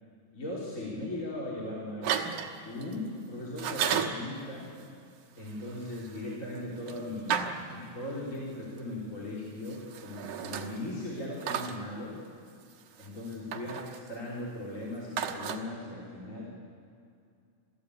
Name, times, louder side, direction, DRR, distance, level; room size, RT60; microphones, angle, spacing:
voice 1, 0.3-2.3 2.7-4.7 5.4-12.2 13.0-16.4, left 1 dB, 25° left, -6 dB, 3.9 m, -38 dB
sound 1, 2.0-2.9 3.6-4.3 5.5-8.2 9.6-11.0 11.4-11.8 13.0-14.1 15.2-15.6, right 8 dB, 85° right, 2.7 m, -34 dB
27.5 x 15.5 x 8.5 m, 2.4 s
omnidirectional pair, 3.4 m